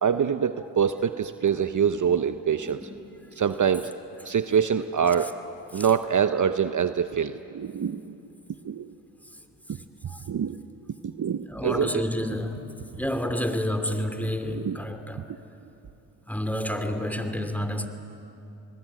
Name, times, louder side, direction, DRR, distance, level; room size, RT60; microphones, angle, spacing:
voice 1, 0.0-2.8 3.4-3.9 4.2-5.4 5.7-8.2 8.6-8.9 9.7-9.8 10.3-10.6 11.0-11.9 14.5-14.8, right 7 dB, 45° right, 10 dB, 0.9 m, -25 dB
voice 2, 1.9-3.4 5.2-5.3 5.7-5.9 9.2-9.4 9.7-10.3 11.5-15.3 16.2-17.9, left 1 dB, 5° left, 7 dB, 2.8 m, -31 dB
26.0 x 20.5 x 9.3 m, 2.9 s
supercardioid pair, 45°, 43 cm